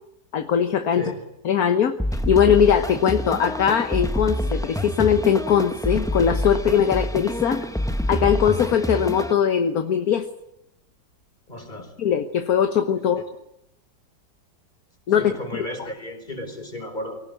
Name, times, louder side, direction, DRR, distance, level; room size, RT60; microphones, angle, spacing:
voice 1, 0.3-1.1 1.4-2.0 2.3-7.7 8.1-10.3 12.0-13.2 15.1-15.6, left 8 dB, 60° left, 8 dB, 1.6 m, -20 dB
sound 1, 2.0-9.3, equal, 5° left, 0.8 m, -27 dB
voice 2, 11.5-11.9 15.2-17.2, left 1 dB, 25° left, 5 dB, 4.6 m, -34 dB
23.5 x 18.5 x 9.0 m, 0.84 s
omnidirectional pair, 1.8 m